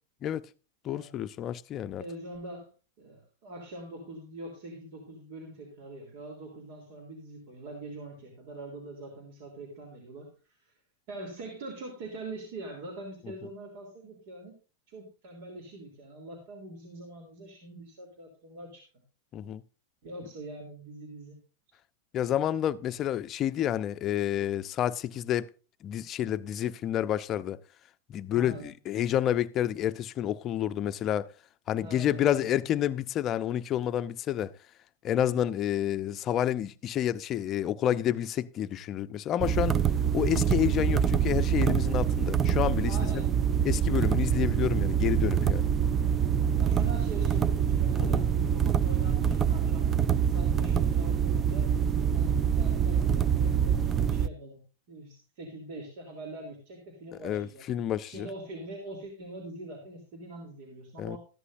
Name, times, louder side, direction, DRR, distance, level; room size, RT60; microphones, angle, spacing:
voice 1, 0.8-2.0 19.3-19.6 22.1-25.5 25.8-27.6 28.1-31.3 31.7-34.5 35.0-39.8 40.1-43.3 43.6-45.7 47.9-48.3 57.2-58.3 61.0-61.2, left 11 dB, 35° left, 0.6 m, -29 dB
voice 2, 2.0-2.7 3.0-10.3 11.1-14.5 14.9-18.8 20.0-21.4 28.3-28.7 31.8-32.5 42.8-43.3 46.6-49.9 50.3-51.6 52.1-54.6 54.9-57.6 58.0-61.2, right 2 dB, 60° right, 3.3 m, -43 dB
sound 1, 39.4-54.3, right 8 dB, 25° right, 0.5 m, -25 dB
14.0 x 11.0 x 2.6 m
hypercardioid pair, 110°, 0 cm